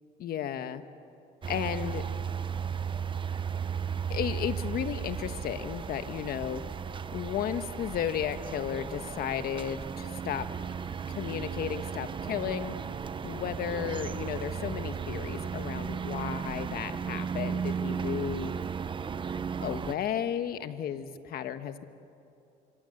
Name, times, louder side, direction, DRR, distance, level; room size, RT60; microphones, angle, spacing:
voice 1, 0.2-0.8 1.5-2.0 4.1-6.6 7.1-10.4 11.1-12.8 13.2-18.5 19.6-21.8, left 9 dB, 65° left, 10 dB, 1.4 m, -34 dB
sound 1, 1.4-20.0, right 7 dB, 30° right, 0.8 m, -35 dB
26.0 x 25.0 x 8.0 m, 2.7 s
cardioid pair, 110°, 17 cm